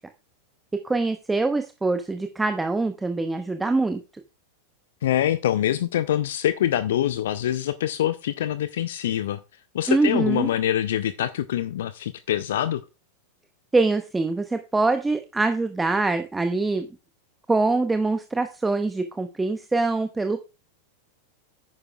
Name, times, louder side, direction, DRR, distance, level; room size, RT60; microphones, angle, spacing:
voice 1, 0.8-4.0 9.9-10.5 13.7-16.9 17.5-20.4, right 3 dB, 10° right, 0.8 m, -24 dB
voice 2, 5.0-9.4 9.7-12.8, left 11 dB, 60° left, 0.5 m, -25 dB
11.0 x 9.7 x 2.3 m
figure-of-eight pair, 90°, 0 cm